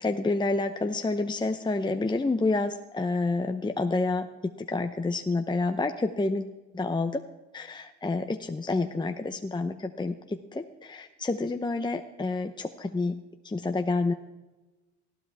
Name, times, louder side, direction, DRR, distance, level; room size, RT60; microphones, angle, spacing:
voice 1, 0.0-4.3 4.7-6.5 6.7-7.2 7.5-10.1 10.5-13.2 13.5-14.1, left 3 dB, 15° left, 6 dB, 0.8 m, -28 dB
20.0 x 14.5 x 3.5 m, 1.1 s
cardioid pair, 90°, 30 cm